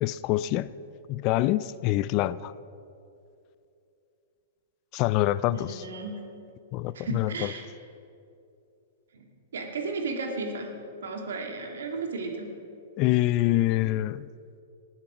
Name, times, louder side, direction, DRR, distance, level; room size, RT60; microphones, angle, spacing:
voice 1, 0.0-0.7 1.1-2.5 4.9-5.8 6.7-7.5 13.0-14.3, left 15 dB, 40° left, 18 dB, 0.4 m, -25 dB
voice 2, 5.5-6.2 6.9-7.7 9.1-9.3 9.5-10.7 11.0-12.5, right 3 dB, 75° right, 3 dB, 2.1 m, -34 dB
18.5 x 7.4 x 6.1 m, 2.6 s
hypercardioid pair, 120°, 0 cm